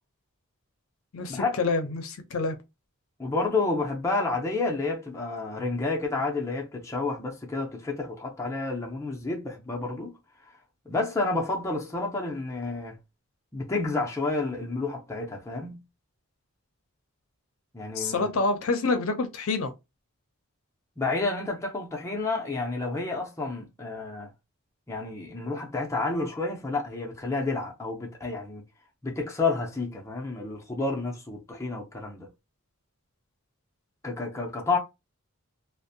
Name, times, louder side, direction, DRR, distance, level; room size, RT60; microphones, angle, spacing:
voice 1, 1.1-2.6 17.9-19.7, left 3 dB, 70° left, 0.5 m, -27 dB
voice 2, 3.2-10.2 10.9-13.0 13.5-15.8 17.7-18.4 21.0-24.3 24.9-28.6 29.0-32.3 34.0-34.8, left 3 dB, 15° left, 0.5 m, -30 dB
2.5 x 2.1 x 2.6 m
head